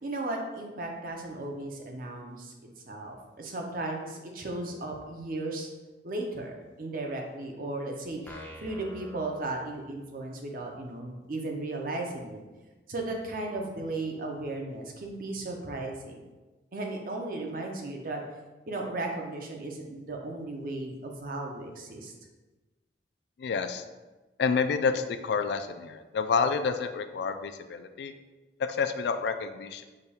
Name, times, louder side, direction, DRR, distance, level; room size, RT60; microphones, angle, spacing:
voice 1, 0.0-2.5 2.9-5.7 6.0-12.4 12.9-16.2 16.7-18.2 18.7-22.1, right 2 dB, 50° right, 1 dB, 0.6 m, -35 dB
sound 1, 8.3-10.2, left 1 dB, 10° left, 0.5 m, -47 dB
voice 2, 23.4-23.8 24.4-28.1 28.6-29.8, left 5 dB, 70° left, 9 dB, 0.3 m, -29 dB
5.1 x 2.3 x 4.2 m, 1.2 s
head